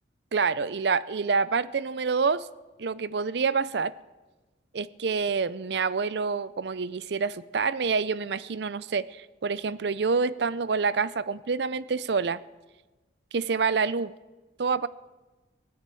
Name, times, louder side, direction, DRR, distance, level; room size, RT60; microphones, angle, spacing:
voice 1, 0.3-2.5 2.8-3.9 4.7-12.4 13.3-14.1 14.6-14.9, right 5 dB, 65° right, 18 dB, 0.5 m, -27 dB
18.0 x 9.5 x 8.3 m, 1.2 s
head